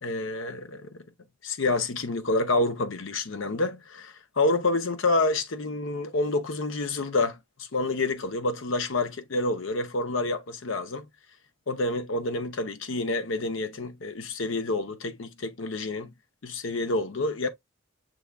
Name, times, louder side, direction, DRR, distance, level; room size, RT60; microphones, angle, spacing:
voice 1, 0.0-1.0 1.4-11.1 11.7-16.1 16.4-17.5, left 2 dB, 70° left, 0.7 m, -28 dB
6.1 x 3.4 x 2.3 m
head